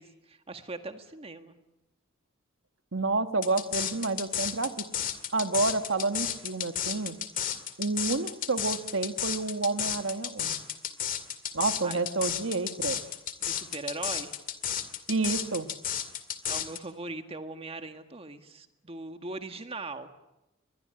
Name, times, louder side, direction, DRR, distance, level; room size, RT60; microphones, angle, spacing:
voice 1, 0.0-1.5 11.8-12.0 13.4-14.3 16.5-20.1, right 3 dB, 30° right, 7 dB, 1.7 m, -40 dB
voice 2, 2.9-4.8 5.3-7.2 7.8-10.6 11.5-13.0 15.1-15.7, right 3 dB, 70° right, 9 dB, 1.5 m, -29 dB
sound 1, 3.4-16.8, left 9 dB, 45° left, 2.2 m, -32 dB
23.5 x 21.0 x 8.9 m, 0.95 s
head